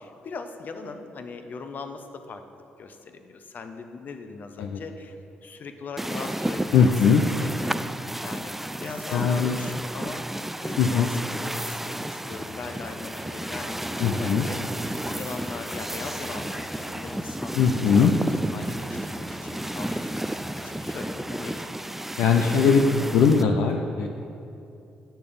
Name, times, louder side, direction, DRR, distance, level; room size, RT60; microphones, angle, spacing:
voice 1, 0.0-7.8 8.2-8.5 8.8-10.3 10.6-14.7 15.1-18.1 18.5-22.1 22.4-22.8, left 4 dB, 55° left, 7 dB, 0.8 m, -40 dB
sound 1, 6.0-23.4, right 1 dB, 5° right, 0.3 m, -32 dB
voice 2, 6.7-7.2 9.1-9.6 10.8-11.1 14.0-14.5 17.5-18.1 22.2-22.8 23.1-24.1, left 6 dB, 75° left, 3 dB, 0.4 m, -20 dB
sound 2, 12.3-21.2, left 1 dB, 10° left, 1.2 m, -43 dB
9.0 x 6.7 x 5.2 m, 2.8 s
hypercardioid pair, 50°, 4 cm